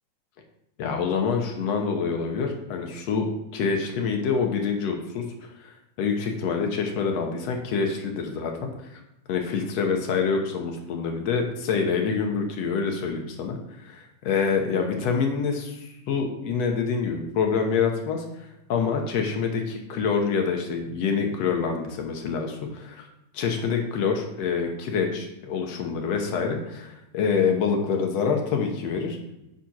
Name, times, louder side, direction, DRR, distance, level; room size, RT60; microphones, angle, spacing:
voice 1, 0.8-5.2 5.6-8.7 9.3-13.6 13.9-18.2 18.7-23.1 23.3-29.2, left 5 dB, 65° left, 3 dB, 2.0 m, -26 dB
9.0 x 4.5 x 5.8 m, 0.88 s
omnidirectional pair, 3.7 m